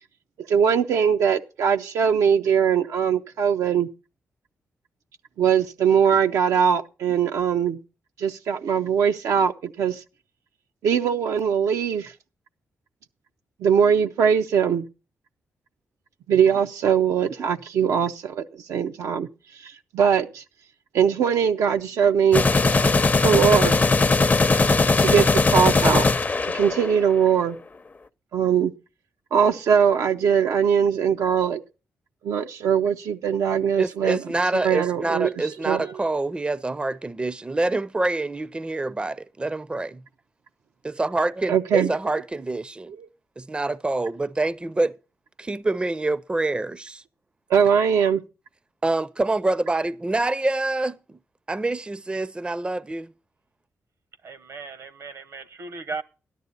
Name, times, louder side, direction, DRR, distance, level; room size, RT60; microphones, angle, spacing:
voice 1, 0.5-3.9 5.4-7.8 8.2-10.0 10.8-12.1 13.6-14.9 16.3-19.3 19.6-20.4 20.9-22.5 23.2-23.8 25.0-26.1 26.5-27.6 28.3-28.7 29.3-31.6 32.2-34.2 34.5-35.3 35.7-35.9 41.5-41.9 43.0-43.1 47.5-48.2, right 7 dB, 80° right, 0.6 m, -21 dB
sound 1, 22.3-27.2, left 3 dB, 30° left, 0.6 m, -19 dB
voice 2, 33.8-40.0 40.8-42.9 43.4-44.9 45.4-47.0 48.8-51.2 51.5-53.1, right 2 dB, 20° right, 0.5 m, -26 dB
voice 3, 54.2-56.0, right 4 dB, 65° right, 0.9 m, -36 dB
12.5 x 11.0 x 3.9 m
cardioid pair, 60°, 5 cm